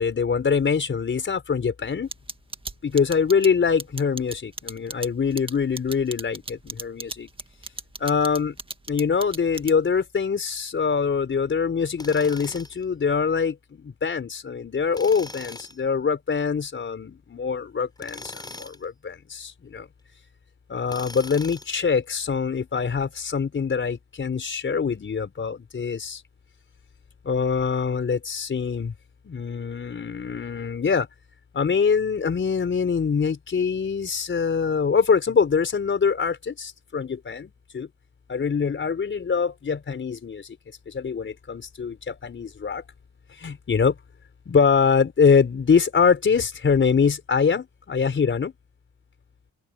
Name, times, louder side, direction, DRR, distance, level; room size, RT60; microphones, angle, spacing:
voice 1, 0.0-2.1 2.8-7.3 8.0-8.6 8.9-19.9 20.7-26.2 27.2-28.9 29.2-31.1 31.5-37.9 38.3-40.6 40.9-42.8 43.4-44.0 44.4-48.5, left 6 dB, 40° left, 5.0 m, -24 dB
sound 1, 2.1-10.0, right 3 dB, 15° right, 1.8 m, -35 dB
Tools, 12.0-12.8 14.9-15.8 18.0-18.8 20.9-21.8, left 2 dB, 15° left, 3.9 m, -40 dB
open air
cardioid pair, 90°, 30 cm